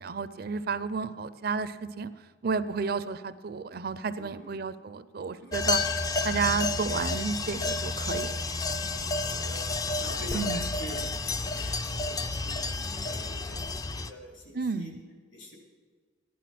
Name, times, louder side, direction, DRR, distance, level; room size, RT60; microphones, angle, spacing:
voice 1, 0.0-2.1 2.4-5.8 6.2-8.4 10.3-10.6 14.5-15.0, right 5 dB, 50° right, 14 dB, 0.5 m, -31 dB
voice 2, 4.1-4.6 5.4-5.7 9.1-9.6 10.0-14.9 15.3-15.5, equal, 75° left, -1 dB, 3.6 m, -46 dB
sound 1, 5.5-14.1, left 3 dB, 20° left, 0.4 m, -30 dB
14.5 x 11.0 x 5.9 m, 1.5 s
head